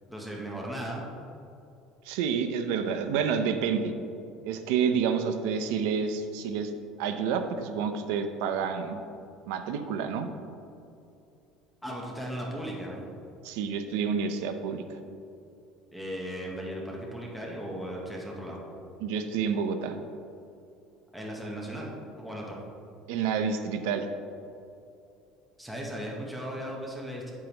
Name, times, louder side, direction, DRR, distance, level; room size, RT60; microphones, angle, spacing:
voice 1, 0.1-1.1 11.8-13.0 15.9-18.6 21.1-22.6 25.6-27.3, equal, ahead, -3 dB, 0.9 m, -37 dB
voice 2, 2.0-3.9 4.4-6.7 7.0-9.0 9.5-10.3 13.4-14.8 19.0-20.0 23.1-24.1, right 6 dB, 80° right, 7 dB, 0.7 m, -29 dB
8.8 x 8.4 x 3.0 m, 2.6 s
cardioid pair, 175°, 0 cm